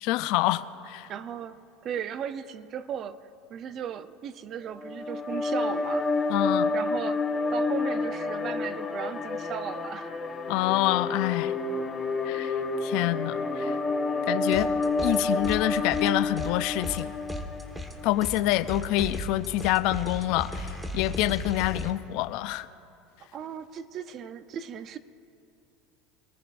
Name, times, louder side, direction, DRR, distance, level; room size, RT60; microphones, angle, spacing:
voice 1, 0.0-1.1 6.3-6.7 10.5-11.5 12.2-13.8 14.3-14.7 15.0-17.1 18.0-22.7, left 16 dB, 65° left, 15 dB, 0.4 m, -27 dB
voice 2, 1.1-3.2 3.5-6.1 6.7-7.2 7.5-10.2 23.3-25.0, right 8 dB, 45° right, 13 dB, 0.7 m, -36 dB
sound 1, 4.7-18.1, left 3 dB, 20° left, 1.1 m, -29 dB
sound 2, 14.5-15.2 15.4-21.9, left 1 dB, 10° right, 1.3 m, -37 dB
23.5 x 14.5 x 2.6 m, 2.6 s
supercardioid pair, 110°, 0 cm